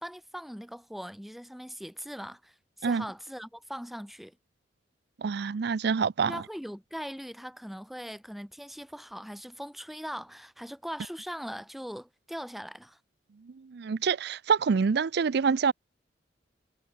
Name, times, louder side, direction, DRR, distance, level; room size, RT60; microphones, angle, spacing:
voice 1, 0.0-4.4 6.3-13.0, equal, ahead, 0.9 m, -40 dB
voice 2, 5.2-6.4 13.7-15.7, right 5 dB, 60° right, 0.4 m, -26 dB
head